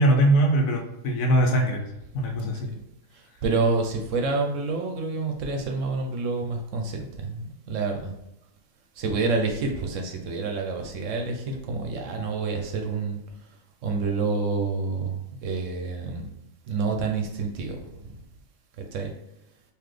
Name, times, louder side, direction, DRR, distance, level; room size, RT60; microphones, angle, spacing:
voice 1, 0.0-1.9 2.1-2.7, right 1 dB, 80° left, 2 dB, 1.2 m, -21 dB
voice 2, 2.4-2.8 3.4-8.1 9.0-13.2 13.8-16.3 16.7-18.1 18.8-19.1, right 4 dB, 70° right, 3 dB, 1.0 m, -28 dB
3.9 x 2.8 x 3.2 m, 0.86 s
omnidirectional pair, 1.4 m